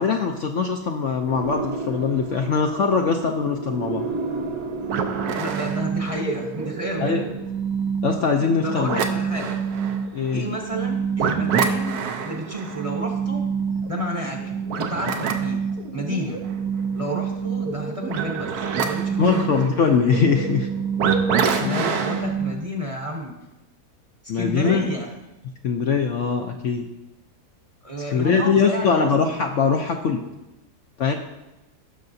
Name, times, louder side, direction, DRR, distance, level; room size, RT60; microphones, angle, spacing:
voice 1, 0.0-4.1 7.0-7.2 8.0-9.0 10.1-10.5 19.2-20.7 21.6-22.0 24.3-24.8 25.6-26.9 28.1-30.2 31.0-31.1, left 5 dB, 65° left, 4 dB, 0.8 m, -22 dB
sound 1, 1.3-5.9, right 3 dB, 45° right, 1.3 m, -32 dB
sound 2, 4.8-22.5, right 6 dB, 70° right, 1.2 m, -26 dB
voice 2, 5.3-7.3 8.6-9.6 10.3-13.4 13.9-15.6 15.9-16.4 16.9-19.7 21.6-23.3 24.3-25.1 27.8-29.2, equal, 25° right, 1 dB, 0.8 m, -31 dB
16.0 x 6.6 x 2.7 m, 0.97 s
omnidirectional pair, 1.7 m